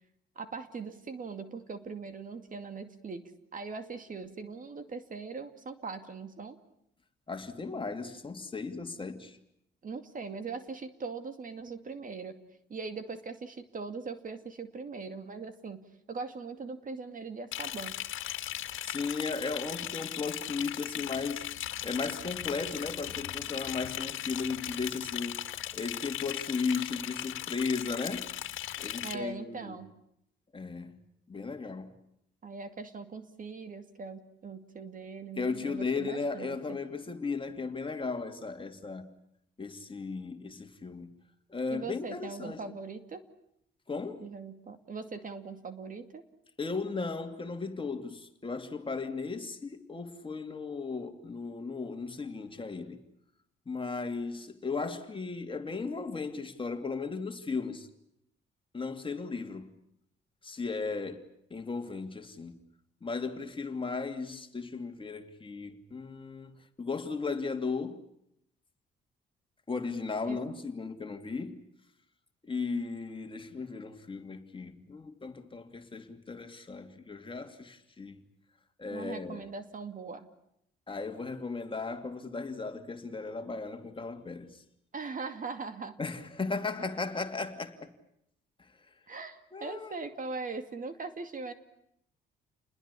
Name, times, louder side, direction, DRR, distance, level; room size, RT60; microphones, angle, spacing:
voice 1, 0.4-3.2 3.5-6.6 9.8-12.4 12.7-17.9 29.0-29.9 32.4-36.8 41.7-43.2 44.2-46.2 70.2-70.4 78.9-80.3 84.9-86.0 89.1-91.5, right 4 dB, 40° right, 2.4 m, -40 dB
voice 2, 7.3-9.4 18.8-21.4 21.8-25.4 25.7-28.3 28.8-29.8 30.5-31.9 35.4-39.1 39.6-41.1 41.5-42.6 43.9-44.2 46.6-53.0 53.7-57.9 58.7-59.7 60.4-61.2 61.5-62.5 63.0-68.0 69.7-71.6 72.5-78.2 78.8-79.5 80.9-84.5 86.0-87.9 89.5-89.9, left 4 dB, 25° left, 2.8 m, -36 dB
Liquid, 17.5-29.1, left 13 dB, 80° left, 2.0 m, -38 dB
29.5 x 21.0 x 8.5 m
cardioid pair, 90°, 20 cm